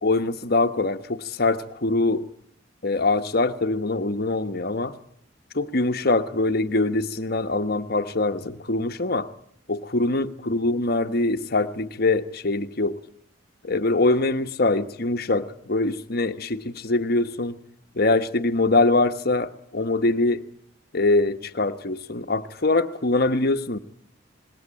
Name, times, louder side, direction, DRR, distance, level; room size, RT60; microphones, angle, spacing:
voice 1, 0.0-2.2 2.8-4.9 5.5-9.3 9.7-12.9 13.6-17.6 17.9-20.4 20.9-23.8, left 2 dB, 50° left, 8 dB, 1.2 m, -23 dB
26.0 x 20.5 x 9.0 m, 0.67 s
head